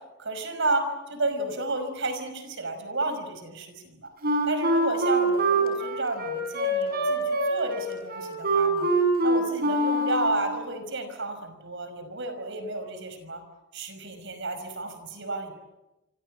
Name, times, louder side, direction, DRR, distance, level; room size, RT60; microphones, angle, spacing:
voice 1, 0.2-4.1 4.5-8.9 9.2-13.4 13.7-15.5, right 2 dB, 65° right, 9 dB, 5.6 m, -31 dB
Wind instrument woodwind instrument, 4.2-10.5, right 1 dB, 50° right, 6.7 m, -24 dB
27.5 x 24.5 x 7.8 m, 1.0 s
head